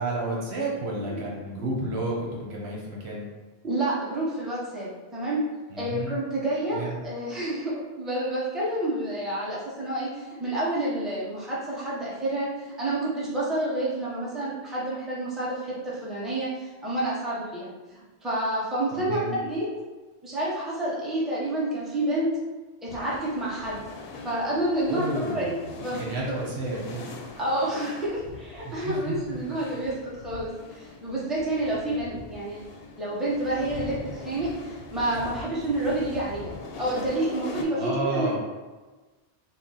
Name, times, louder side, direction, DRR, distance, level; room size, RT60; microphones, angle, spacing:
voice 1, 0.0-3.3 5.7-6.1 6.7-7.0 18.9-19.4 24.8-25.6 25.9-27.1 28.6-28.7 29.1-29.2 37.7-38.4, right 2 dB, 75° right, -3 dB, 1.1 m, -31 dB
voice 2, 3.6-5.4 5.8-19.7 20.2-22.4 22.8-23.8 24.2-25.6 25.8-26.4 27.4-32.6 33.0-36.5 36.8-38.3, right 1 dB, ahead, -8 dB, 0.8 m, -29 dB
sound 1, 22.9-37.6, left 3 dB, 70° left, 0.7 m, -41 dB
4.0 x 2.0 x 3.9 m, 1.2 s
omnidirectional pair, 1.1 m